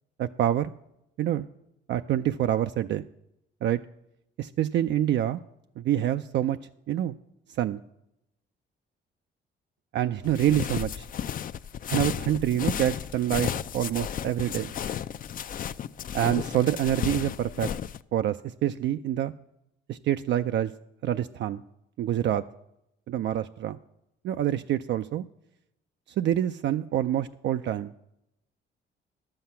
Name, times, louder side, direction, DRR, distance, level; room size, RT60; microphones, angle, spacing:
voice 1, 0.2-0.7 1.2-1.5 1.9-3.1 3.6-3.8 4.4-5.4 5.8-6.6 6.9-7.2 7.6-7.8 9.9-11.1 11.9-14.7 16.1-17.7 18.1-19.3 19.9-20.7 21.0-21.6 22.0-22.4 23.1-23.8 24.2-25.2 26.2-27.9, right 11 dB, 65° right, 8 dB, 0.4 m, -26 dB
sound 1, 10.2-18.0, left 9 dB, 45° left, 0.4 m, -33 dB
11.5 x 7.8 x 5.6 m, 0.83 s
cardioid pair, 90°, 20 cm